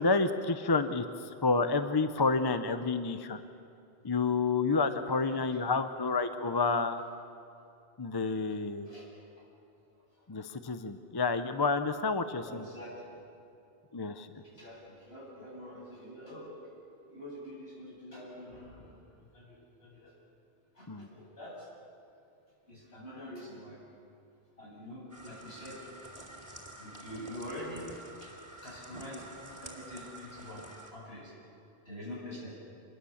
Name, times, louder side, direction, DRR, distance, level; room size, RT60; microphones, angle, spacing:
voice 1, 0.0-3.4 4.0-7.0 8.0-8.9 10.3-12.7 13.9-14.3 20.9-21.1, left 4 dB, 25° left, 10 dB, 0.7 m, -29 dB
voice 2, 5.2-5.8 8.9-9.1 10.0-10.4 10.8-10.9 12.4-13.2 14.3-16.5 17.1-20.2 20.7-21.7 22.7-23.8 24.6-25.8 26.8-27.9 28.2-28.3 28.6-29.3 29.6-30.7 30.9-31.3 31.9-32.5, left 1 dB, 75° left, -4 dB, 7.2 m, -46 dB
sound 1, 25.1-30.9, right 1 dB, 15° right, 3.2 m, -49 dB
26.5 x 21.5 x 7.2 m, 2.6 s
omnidirectional pair, 1.1 m